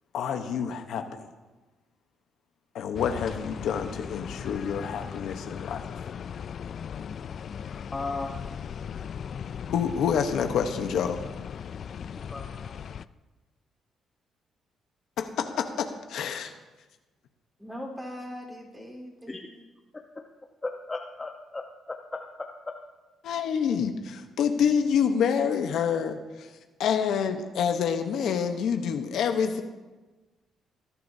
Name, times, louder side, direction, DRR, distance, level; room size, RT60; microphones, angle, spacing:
voice 1, 0.1-1.3 2.7-5.8 9.7-11.2 15.2-16.5 23.2-26.5 26.8-29.6, left 7 dB, 75° left, 5 dB, 1.0 m, -27 dB
sound 1, 2.9-13.0, left 7 dB, 55° left, 0.3 m, -38 dB
voice 2, 7.9-8.4 12.2-12.9 19.3-19.5 20.6-21.6 21.9-22.5, left 3 dB, 20° left, 2 dB, 0.9 m, -36 dB
voice 3, 17.6-19.6, left 1 dB, 10° right, -2 dB, 3.8 m, -40 dB
18.5 x 11.5 x 2.7 m, 1.2 s
cardioid pair, 90°, 0 cm